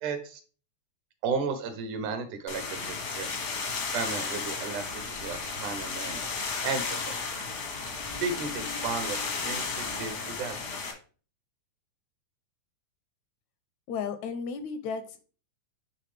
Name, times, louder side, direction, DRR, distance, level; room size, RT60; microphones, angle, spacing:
voice 1, 0.0-0.4 1.2-3.3 3.9-4.9 5.2-6.3 6.6-7.1 8.2-9.2 9.4-10.6, right 5 dB, 80° right, 8 dB, 2.4 m, -34 dB
sound 1, 2.5-10.9, left 4 dB, 65° left, 0.9 m, -34 dB
sound 2, 4.9-10.1, left 2 dB, 35° left, 0.5 m, -49 dB
voice 2, 13.9-15.2, left 5 dB, 80° left, 10 dB, 1.8 m, -34 dB
9.8 x 3.4 x 3.3 m, 0.39 s
omnidirectional pair, 3.5 m